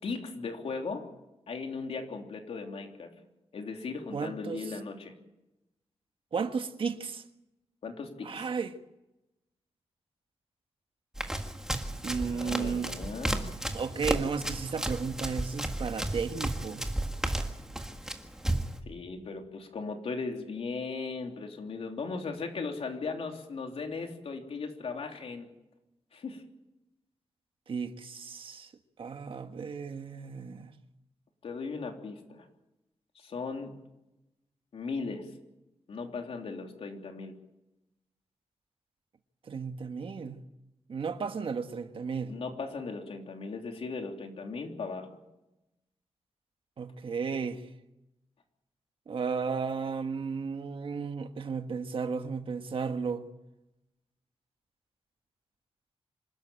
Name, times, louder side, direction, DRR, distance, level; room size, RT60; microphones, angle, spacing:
voice 1, 0.0-1.1 1.5-3.1 3.5-5.1 7.8-8.5 12.2-13.4 18.9-25.5 26.1-26.4 31.4-32.4 33.1-33.8 34.7-35.3 35.9-37.3 42.3-45.1, left 4 dB, 70° left, 3.2 m, -37 dB
voice 2, 4.1-4.6 6.3-7.2 8.2-8.8 12.0-12.9 13.7-16.9 27.7-28.7 29.0-30.7 39.5-40.4 40.9-42.4 46.8-47.6 49.1-53.3, right 5 dB, 55° right, 1.5 m, -34 dB
Run, 11.2-18.8, right 1 dB, 5° right, 1.7 m, -33 dB
26.5 x 12.5 x 9.0 m
wide cardioid pair, 150°, 11 cm